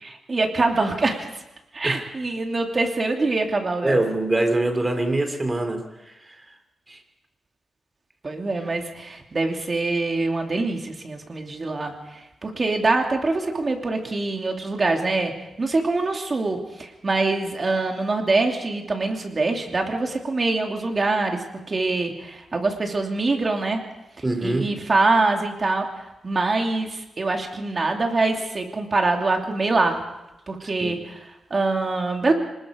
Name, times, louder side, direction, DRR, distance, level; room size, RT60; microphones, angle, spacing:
voice 1, 0.0-1.4 1.7-4.0 8.2-15.3 15.6-23.8 24.4-30.0 30.5-32.3, right 3 dB, 35° right, 3 dB, 2.8 m, -24 dB
voice 2, 3.8-5.8 6.9-7.0 24.2-24.7 30.6-30.9, right 2 dB, 20° right, 6 dB, 2.9 m, -23 dB
25.0 x 20.0 x 5.2 m, 0.96 s
wide cardioid pair, 120°, 0 cm